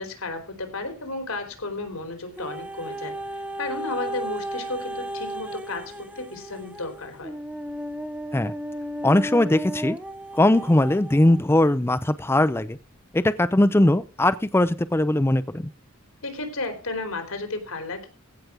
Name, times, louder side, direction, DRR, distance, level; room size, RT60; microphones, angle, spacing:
voice 1, 0.0-3.2 3.6-7.3 16.2-18.1, left 2 dB, 85° left, 7 dB, 3.6 m, -33 dB
sound 1, 2.4-11.5 12.1-12.2, right 1 dB, 5° right, 1.0 m, -34 dB
voice 2, 9.0-10.0 10.3-12.8 13.1-15.7, left 1 dB, 10° left, 13 dB, 0.4 m, -20 dB
16.0 x 5.9 x 5.1 m, 0.33 s
head